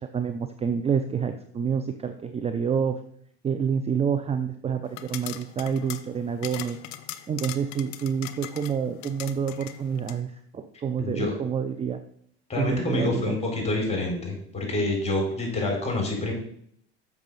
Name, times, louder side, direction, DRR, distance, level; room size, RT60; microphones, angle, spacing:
voice 1, 0.1-3.0 3.4-6.8 7.3-12.0 12.6-13.4, right 7 dB, 20° right, 9 dB, 0.5 m, -28 dB
sound 1, 4.9-10.2, left 13 dB, 55° left, 0.8 m, -40 dB
voice 2, 11.0-11.3 12.5-16.3, left 2 dB, 20° left, 1 dB, 3.9 m, -27 dB
7.1 x 6.0 x 5.4 m, 0.67 s
hypercardioid pair, 90°, 33 cm